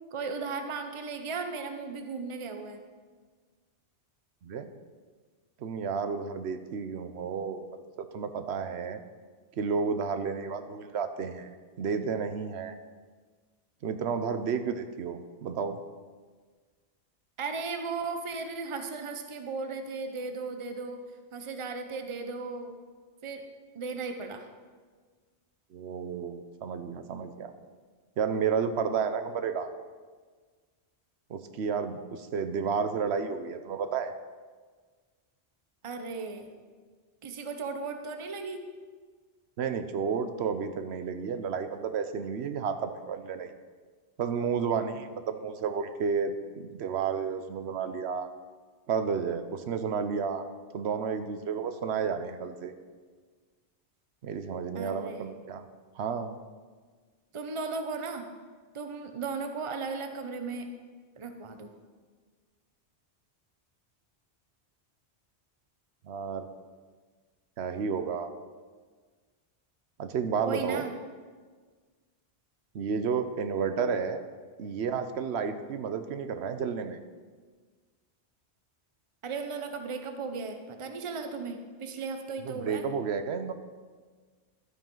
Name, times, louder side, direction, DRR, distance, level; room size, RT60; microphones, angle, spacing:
voice 1, 0.1-2.8 17.4-21.0 21.3-22.7 23.2-23.4 23.7-24.5 35.8-36.5 37.2-38.6 54.7-55.4 57.3-58.2 58.7-60.7 61.2-61.7 70.4-70.9 79.2-82.9, right 4 dB, 30° right, 6 dB, 0.8 m, -36 dB
voice 2, 5.6-7.6 8.0-9.0 9.6-11.5 11.8-12.7 13.8-15.8 25.7-27.5 28.2-29.7 31.3-34.1 39.6-43.5 44.2-48.3 48.9-50.5 50.7-52.7 54.2-55.7 55.9-56.4 66.0-66.5 67.6-68.3 70.0-70.8 72.7-74.2 74.6-77.0 82.5-83.5, right 6 dB, 75° right, 9 dB, 1.0 m, -31 dB
12.5 x 9.1 x 3.9 m, 1.5 s
omnidirectional pair, 1.1 m